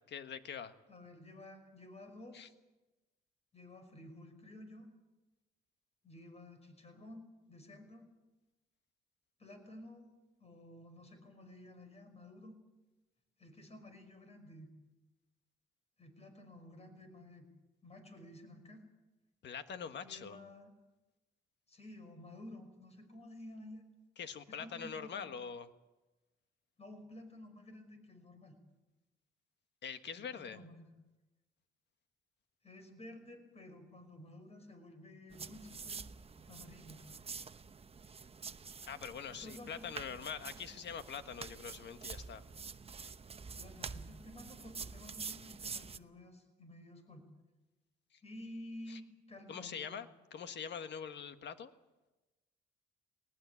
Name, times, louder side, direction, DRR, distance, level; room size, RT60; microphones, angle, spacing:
voice 1, 0.1-0.7 2.3-2.5 19.4-20.4 24.2-25.7 29.8-30.6 38.9-42.4 48.9-49.0 49.5-51.7, left 7 dB, 60° left, 9 dB, 1.6 m, -44 dB
voice 2, 0.9-2.5 3.5-4.9 6.0-7.2 7.5-8.1 9.4-10.0 10.4-12.6 13.4-14.7 16.0-17.5 17.8-18.9 19.9-20.7 21.7-23.8 24.5-25.3 26.8-28.6 30.1-30.9 32.6-36.0 36.5-37.1 39.3-39.9 43.6-47.3 48.2-50.0, left 1 dB, 30° left, 7 dB, 5.5 m, -52 dB
sound 1, 35.3-46.0, right 5 dB, 30° right, 0.9 m, -47 dB
21.0 x 19.5 x 8.5 m, 1.1 s
cardioid pair, 90°, 20 cm